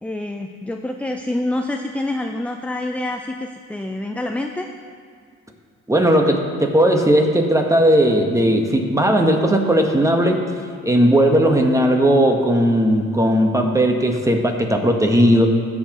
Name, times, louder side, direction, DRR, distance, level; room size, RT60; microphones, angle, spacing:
voice 1, 0.0-4.7, left 1 dB, 5° left, 4 dB, 0.4 m, -27 dB
voice 2, 5.9-10.4 10.8-15.5, equal, 10° right, 3 dB, 1.1 m, -17 dB
15.5 x 6.8 x 3.0 m, 2.1 s
cardioid pair, 90°, 30 cm